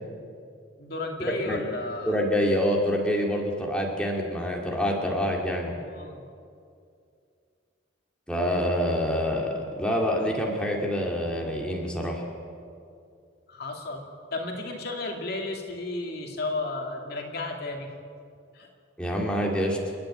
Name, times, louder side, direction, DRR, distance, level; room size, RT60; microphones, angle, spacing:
voice 1, 0.8-2.2 5.7-6.2 13.5-14.1 14.3-17.9 18.5-18.7, left 2 dB, 55° left, 1 dB, 2.5 m, -33 dB
voice 2, 2.1-5.7 8.3-12.2 19.0-19.8, equal, 5° left, -1 dB, 2.4 m, -26 dB
30.0 x 10.5 x 8.9 m, 2.4 s
head